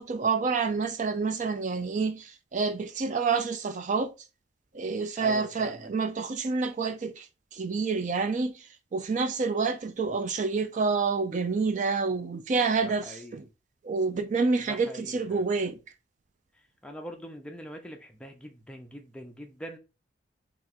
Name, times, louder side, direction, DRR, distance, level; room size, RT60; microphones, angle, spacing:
voice 1, 0.0-4.1 4.7-13.4 13.8-15.8, right 4 dB, 40° right, 0.4 m, -28 dB
voice 2, 5.2-5.9 12.8-13.4 14.7-15.5 16.8-19.8, equal, 5° left, 0.6 m, -43 dB
3.5 x 2.9 x 4.3 m
head